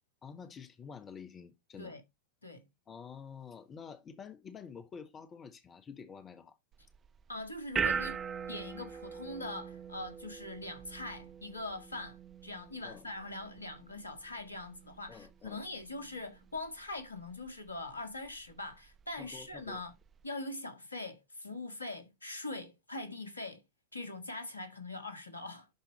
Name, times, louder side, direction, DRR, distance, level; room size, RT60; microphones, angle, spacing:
voice 1, 0.2-1.9 2.9-6.5 12.8-13.0 15.1-15.6 19.2-19.8, left 6 dB, 25° left, 1.2 m, -48 dB
sound 1, 6.7-20.3, right 7 dB, 25° right, 0.4 m, -42 dB
voice 2, 7.3-8.2 8.5-19.9 20.2-23.6 23.9-25.7, left 2 dB, 80° left, 1.6 m, -42 dB
11.5 x 4.4 x 4.0 m
figure-of-eight pair, 90°, 0 cm